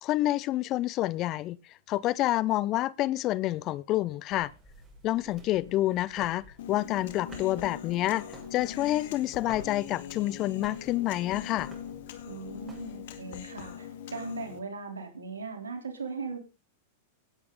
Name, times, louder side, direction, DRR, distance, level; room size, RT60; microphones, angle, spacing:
voice 1, 0.0-1.6 1.9-4.5 5.0-8.2 8.5-11.7, left 15 dB, 40° left, 0.6 m, -28 dB
sound 1, 4.3-13.2, right 2 dB, 20° right, 6.5 m, -53 dB
Human voice, 6.6-14.6, left 9 dB, 60° left, 2.0 m, -42 dB
voice 2, 12.3-16.4, right 4 dB, 85° right, 3.5 m, -38 dB
17.0 x 8.6 x 3.9 m
hypercardioid pair, 100°, 0 cm